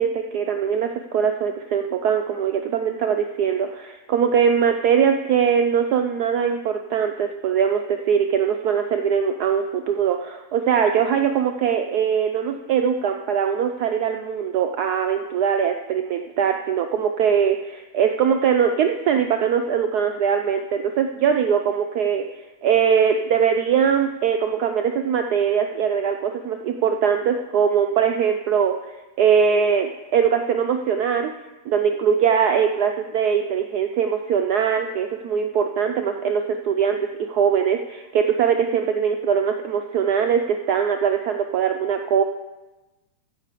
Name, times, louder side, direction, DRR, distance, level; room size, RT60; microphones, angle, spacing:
voice 1, 0.0-22.2 22.6-31.3 31.7-42.2, right 7 dB, 90° right, 5 dB, 0.8 m, -21 dB
15.5 x 5.7 x 4.9 m, 1.1 s
omnidirectional pair, 2.3 m